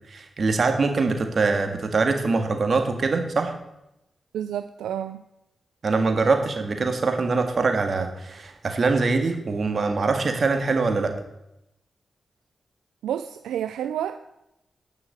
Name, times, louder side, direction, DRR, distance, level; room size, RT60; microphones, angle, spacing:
voice 1, 0.1-3.5 5.8-11.1, right 4 dB, 60° right, 6 dB, 1.9 m, -23 dB
voice 2, 4.3-5.2 13.0-14.2, right 10 dB, 90° right, 10 dB, 0.4 m, -29 dB
9.3 x 6.4 x 8.2 m, 0.87 s
supercardioid pair, 40°, 0 cm